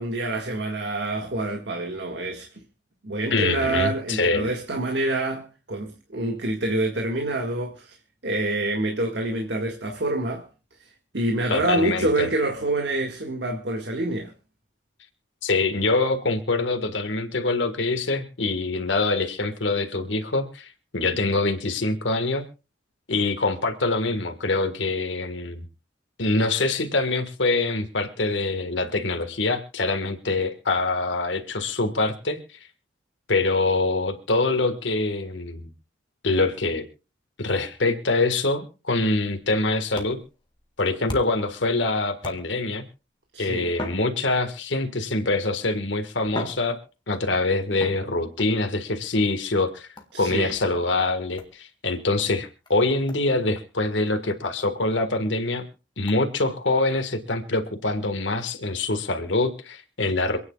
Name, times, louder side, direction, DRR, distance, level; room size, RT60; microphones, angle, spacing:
voice 1, 0.0-2.6 3.0-8.0 8.2-10.5 10.8-14.3 43.3-43.7 50.1-50.5, right 2 dB, 65° right, 1.9 m, -27 dB
voice 2, 3.3-4.5 11.5-12.3 15.4-22.4 23.1-25.6 26.2-32.4 33.3-35.7 36.2-36.8 37.4-40.2 40.8-42.8 43.4-46.8 47.1-49.9 50.2-55.6 56.0-60.4, left 2 dB, 85° left, 1.7 m, -24 dB
sound 1, 39.4-41.5 42.2-42.8 43.7-44.8 45.6-45.7 46.2-47.3 47.8-48.5 50.0-50.3 51.4-51.6 52.2-52.3 52.6-52.7 53.1-53.2 53.5-53.7 54.1-54.2 54.6-54.7 55.1-55.2 56.1-56.2, left 1 dB, 25° left, 1.8 m, -39 dB
27.0 x 9.6 x 2.4 m
head